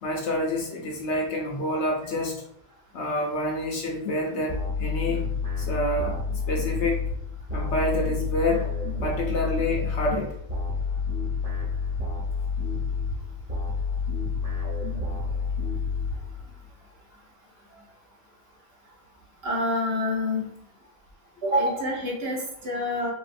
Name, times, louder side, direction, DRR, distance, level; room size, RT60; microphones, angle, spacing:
voice 1, 0.0-2.4 2.9-5.2 5.6-7.0 7.5-8.7 9.0-10.4, left 1 dB, 65° left, 0 dB, 0.7 m, -28 dB
sound 1, 4.5-16.7, left 4 dB, 25° right, 1.1 m, -29 dB
voice 2, 19.4-20.5 21.4-23.1, left 1 dB, 55° right, -2 dB, 0.9 m, -26 dB
3.3 x 2.6 x 2.5 m, 0.72 s
omnidirectional pair, 1.5 m